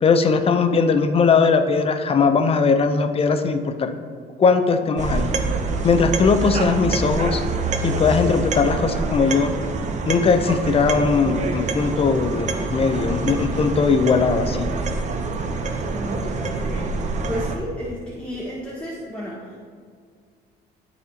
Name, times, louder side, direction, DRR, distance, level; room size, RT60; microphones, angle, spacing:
voice 1, 0.0-3.9 4.4-5.3 5.8-7.4 7.8-9.5 10.1-14.7, left 5 dB, 35° left, 7 dB, 0.6 m, -19 dB
sound 1, 5.0-17.6, right 3 dB, 45° right, 0.7 m, -26 dB
voice 2, 15.9-17.0 17.3-19.6, equal, 5° left, -7 dB, 1.1 m, -32 dB
12.5 x 4.2 x 2.8 m, 2.1 s
cardioid pair, 110°, 17 cm